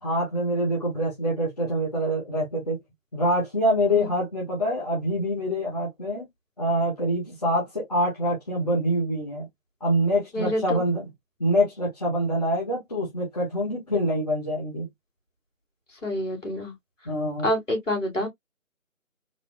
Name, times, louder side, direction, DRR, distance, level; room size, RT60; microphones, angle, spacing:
voice 1, 0.0-2.8 3.1-6.2 6.6-9.5 9.8-11.1 11.4-14.9 17.0-17.5, equal, 30° left, 1.2 m, -25 dB
voice 2, 10.3-10.8 16.0-16.7 17.4-18.3, left 1 dB, 60° left, 2.4 m, -27 dB
4.1 x 2.7 x 2.4 m
figure-of-eight pair, 160°, 42 cm